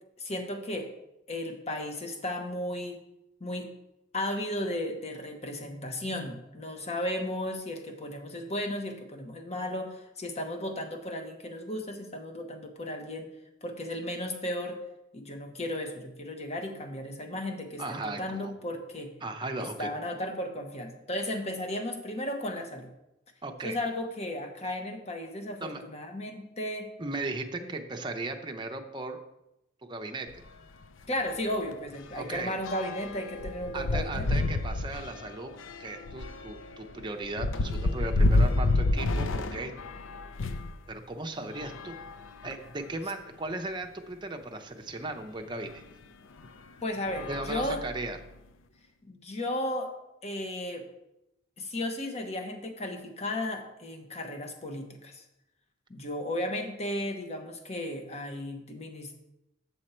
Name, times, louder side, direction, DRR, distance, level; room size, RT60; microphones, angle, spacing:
voice 1, 0.2-0.9 1.3-3.0 3.4-3.7 4.1-13.3 13.6-14.8 15.1-19.1 19.8-22.9 23.6-26.9 27.6-27.7 31.1-34.4 46.8-47.8 49.0-49.9 50.2-50.8 51.6-55.2 55.9-59.2, left 1 dB, 35° left, 4 dB, 1.1 m, -35 dB
voice 2, 17.8-18.5 19.2-19.9 23.4-23.8 25.6-25.8 27.0-29.2 29.8-30.4 32.1-32.6 33.7-35.5 35.8-39.7 40.9-42.0 42.4-45.8 47.3-48.2, right 2 dB, 25° right, 4 dB, 0.7 m, -37 dB
sound 1, 30.3-30.5 30.8-30.9 31.3-40.8 41.5-42.8 43.5-43.6 43.8-43.9 45.6-45.8 46.4-46.6 47.0-48.3, left 2 dB, 85° left, 0.5 m, -30 dB
8.0 x 6.4 x 4.3 m, 0.88 s
head